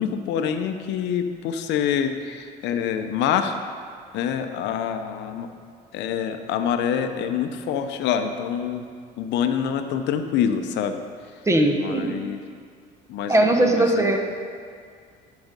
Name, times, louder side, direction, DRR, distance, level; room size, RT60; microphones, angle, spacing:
voice 1, 0.0-3.6 4.1-5.5 5.9-8.9 9.2-11.4 11.8-12.4 13.1-14.2, left 8 dB, 70° left, 8 dB, 0.7 m, -26 dB
voice 2, 11.5-12.2 13.3-14.2, right 1 dB, 15° right, 3 dB, 1.1 m, -19 dB
10.5 x 5.1 x 5.2 m, 2.1 s
supercardioid pair, 85°, 19 cm